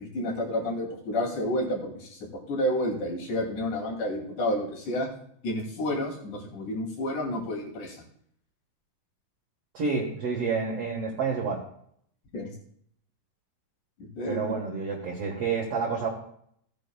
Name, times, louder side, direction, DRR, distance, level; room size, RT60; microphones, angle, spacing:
voice 1, 0.0-2.2 2.5-5.1 5.4-8.0 12.3-12.5 14.0-14.5, left 1 dB, 65° left, -1 dB, 3.8 m, -30 dB
voice 2, 9.7-11.6 14.3-16.1, right 5 dB, 55° right, -2 dB, 2.0 m, -29 dB
16.5 x 9.0 x 2.3 m, 0.67 s
omnidirectional pair, 3.9 m